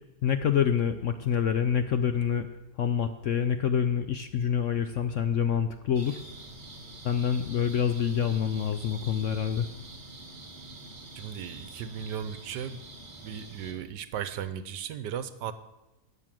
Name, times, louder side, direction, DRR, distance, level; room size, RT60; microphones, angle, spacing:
voice 1, 0.2-2.5 2.8-6.2 7.0-9.7, left 8 dB, 65° left, 9 dB, 0.8 m, -26 dB
sound 1, 5.9-13.7, right 2 dB, 30° right, 1.7 m, -46 dB
voice 2, 11.2-12.8 13.2-15.5, right 9 dB, 80° right, 13 dB, 1.4 m, -36 dB
12.5 x 8.5 x 7.4 m, 1.0 s
omnidirectional pair, 1.8 m